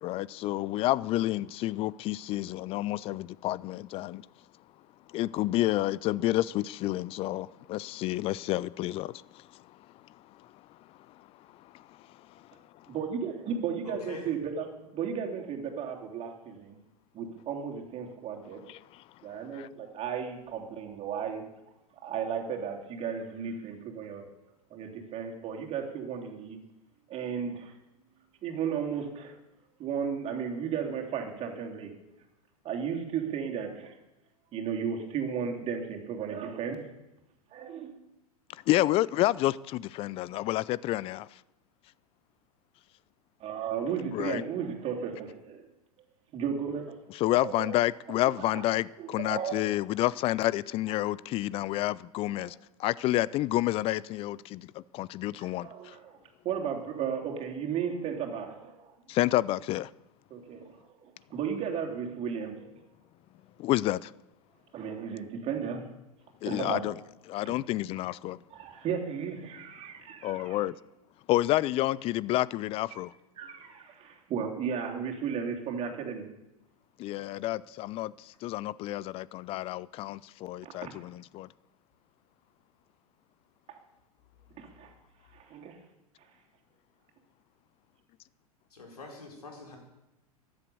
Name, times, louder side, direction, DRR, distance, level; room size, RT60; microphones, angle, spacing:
voice 1, 0.0-4.3 5.1-9.8 10.4-10.5 11.2-11.3 11.5-12.1 12.8-12.9 18.7-19.0 19.5-19.7 38.7-41.4 44.1-44.4 47.1-56.0 59.1-59.9 63.6-64.1 66.4-66.9 67.3-68.4 70.2-70.8 71.3-73.1 77.0-81.5, left 16 dB, 30° left, 0.4 m, -30 dB
voice 2, 12.9-14.6 15.0-16.8 17.1-18.6 19.2-21.5 22.0-24.3 24.7-26.6 27.1-27.8 28.4-29.3 29.8-31.9 32.6-34.0 34.5-36.8 37.5-38.0 43.4-45.7 46.3-47.0 47.4-47.7 48.4-48.6 49.0-49.6 55.4-56.2 56.4-58.9 60.3-62.7 64.7-65.9 66.4-66.8 67.4-67.6 68.5-70.6 72.9-73.0 73.4-76.3 80.6-80.9 83.7-83.8 84.6-84.9 85.3-85.8, right 7 dB, 30° right, 3.1 m, -34 dB
voice 3, 13.8-14.3 88.7-89.8, left 4 dB, 80° left, 4.6 m, -44 dB
14.5 x 11.5 x 7.0 m
figure-of-eight pair, 100°, 19 cm